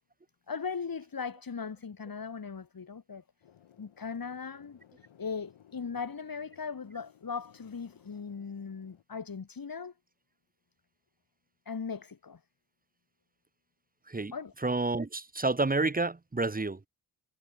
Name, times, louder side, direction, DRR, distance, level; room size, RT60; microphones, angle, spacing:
voice 1, 0.5-3.2 3.8-4.8 5.2-9.9 11.7-12.4 14.3-14.5, left 5 dB, 45° left, 3.9 m, -38 dB
sound 1, 3.4-9.0, left 10 dB, 85° left, 5.8 m, -60 dB
voice 2, 14.6-16.8, right 3 dB, 20° right, 1.3 m, -29 dB
cardioid pair, 60°, 46 cm